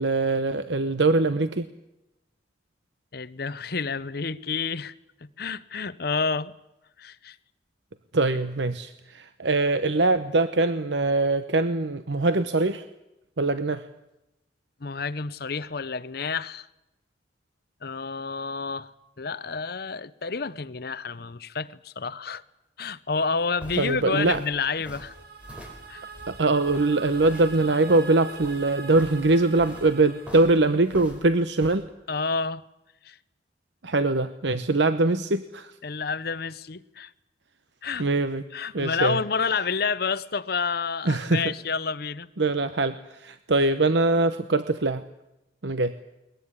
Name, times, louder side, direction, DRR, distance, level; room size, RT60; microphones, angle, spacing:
voice 1, 0.0-1.7 8.1-12.8 13.4-13.8 23.8-24.4 26.3-31.9 33.8-35.7 38.0-38.4 38.7-39.2 41.1-41.4 42.4-45.0 45.6-45.9, right 2 dB, 75° right, 0.9 m, -23 dB
voice 2, 3.1-4.9 5.4-6.5 7.0-7.4 14.8-16.7 17.8-22.4 22.8-25.1 25.9-26.0 32.1-32.6 33.0-33.2 35.8-37.1 37.8-38.1 38.5-42.3, left 5 dB, 55° left, 0.8 m, -29 dB
sound 1, 23.3-31.8, equal, 5° right, 4.4 m, -46 dB
sound 2, 24.2-31.3, right 4 dB, 60° right, 2.5 m, -43 dB
21.5 x 20.5 x 9.8 m
head